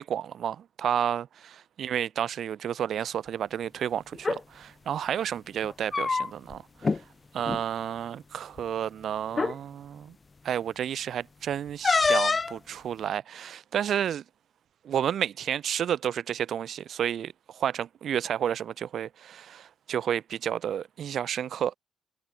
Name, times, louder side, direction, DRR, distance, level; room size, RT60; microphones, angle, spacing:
voice 1, 0.0-6.6 6.9-7.0 7.3-10.1 10.4-14.2 14.8-21.8, right 9 dB, 65° right, 1.0 m, -31 dB
sound 1, 4.1-4.4 5.6-6.5 6.8-7.0 7.4-7.6 8.6-8.7 9.3-9.6 11.8-12.6, left 4 dB, 30° left, 0.4 m, -25 dB
cardioid pair, 90°, 0 cm